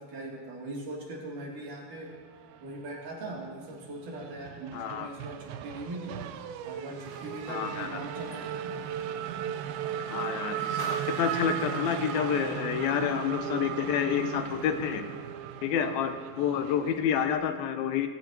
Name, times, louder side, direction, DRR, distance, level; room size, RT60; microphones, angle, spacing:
voice 1, 0.0-2.1 2.6-6.2 6.6-8.8, right 2 dB, 55° right, -3 dB, 4.3 m, -40 dB
Race car auto racing / Accelerating revving vroom, 2.3-3.3 3.7-17.3, right 9 dB, 80° right, 2.5 m, -36 dB
voice 2, 4.7-5.1 7.5-8.0 10.1-10.7 11.1-15.1 15.6-18.1, left 8 dB, 80° left, 7 dB, 2.6 m, -29 dB
sound 1, 6.8-12.8 13.2-13.3 14.7-14.8, left 1 dB, 30° left, 5.5 m, -49 dB
25.5 x 16.5 x 3.0 m, 1.5 s
omnidirectional pair, 4.3 m